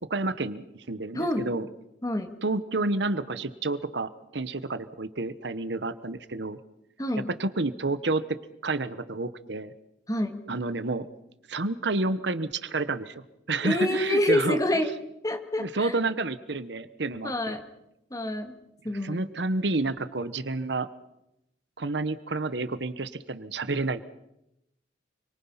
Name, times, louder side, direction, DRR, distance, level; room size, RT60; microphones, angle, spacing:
voice 1, 0.1-1.7 2.4-6.6 7.4-8.4 8.6-9.7 10.5-11.1 11.5-14.6 15.6-17.6 19.0-20.9 21.8-24.0, right 2 dB, 65° right, 13 dB, 1.1 m, -30 dB
voice 2, 1.1-1.5 2.0-2.4 7.0-7.3 10.1-10.4 13.6-14.9 15.2-16.0 17.2-17.6 18.1-18.5 18.8-19.2, left 1 dB, 20° left, 6 dB, 2.3 m, -27 dB
29.5 x 23.5 x 5.7 m, 0.87 s
head